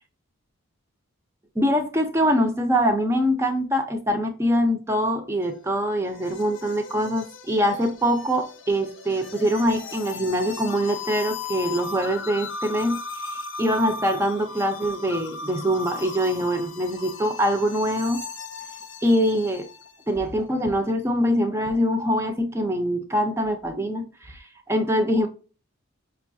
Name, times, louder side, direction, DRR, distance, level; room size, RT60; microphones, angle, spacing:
voice 1, 1.6-18.2 19.0-19.7 20.1-25.3, equal, 10° right, 0.4 m, -24 dB
sound 1, 5.4-20.0, left 4 dB, 55° left, 0.5 m, -37 dB
5.5 x 2.3 x 2.5 m
head